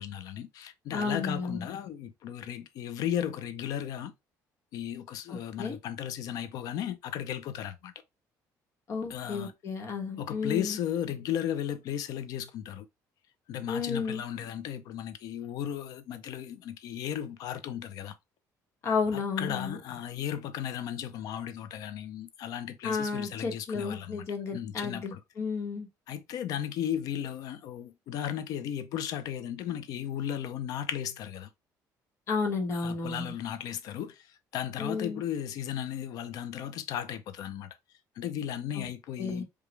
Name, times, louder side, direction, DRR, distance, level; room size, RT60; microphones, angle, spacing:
voice 1, 0.0-4.1 4.7-7.9 9.1-9.5 10.2-12.9 13.5-18.1 19.1-24.2 24.5-25.2 26.1-31.5 32.7-34.3 34.5-37.8 38.2-39.4, left 10 dB, 60° left, 0.6 m, -35 dB
voice 2, 0.9-1.7 5.3-5.8 8.9-10.8 13.7-14.2 18.8-19.8 22.8-25.9 32.3-33.3 34.8-35.2 38.7-38.9 39.2-39.4, left 5 dB, 40° left, 1.2 m, -32 dB
5.0 x 2.4 x 3.2 m
cardioid pair, 160°, 7 cm